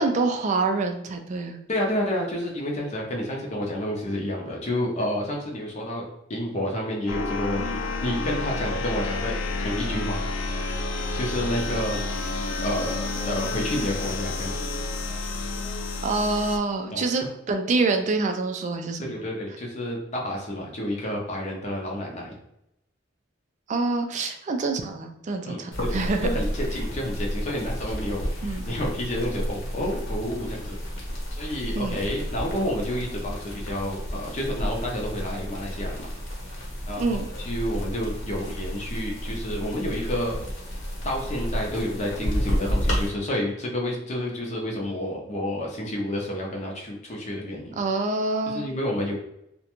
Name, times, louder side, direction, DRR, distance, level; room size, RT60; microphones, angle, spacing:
voice 1, 0.0-1.6 16.0-19.1 23.7-26.3 28.4-28.6 31.7-32.0 37.0-37.2 47.8-48.7, right 3 dB, 40° right, 5 dB, 0.3 m, -26 dB
voice 2, 1.7-10.2 11.1-12.2 12.6-14.6 16.9-17.3 19.0-22.4 25.4-30.8 31.3-36.1 36.9-40.4 41.0-47.8 48.5-49.1, left 1 dB, 35° left, -1 dB, 0.5 m, -30 dB
sound 1, 7.1-16.6, left 3 dB, 90° left, 0.3 m, -30 dB
sound 2, 25.7-43.1, equal, 65° left, 1.0 m, -31 dB
2.4 x 2.1 x 2.9 m, 0.82 s
head